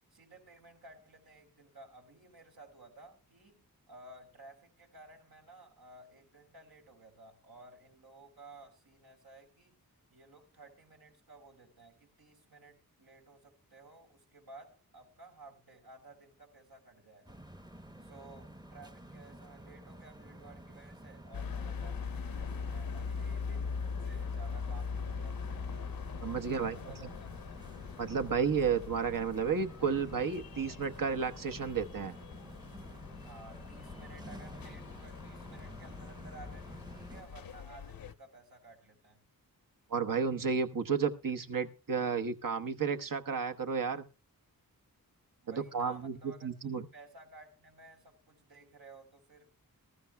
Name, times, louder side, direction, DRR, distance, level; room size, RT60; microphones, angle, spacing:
voice 1, 0.1-9.8 10.1-17.4 18.0-25.7 26.5-27.6 33.2-39.2 45.4-49.6, right 2 dB, 85° right, 3.6 m, -55 dB
sound 1, 17.3-37.2, right 1 dB, 10° right, 0.8 m, -51 dB
sound 2, 21.3-38.1, left 5 dB, 75° left, 0.7 m, -41 dB
voice 2, 26.2-26.8 28.0-32.2 39.9-44.0 45.5-46.8, right 6 dB, 65° right, 1.1 m, -32 dB
21.0 x 13.0 x 2.2 m
wide cardioid pair, 110°, 35 cm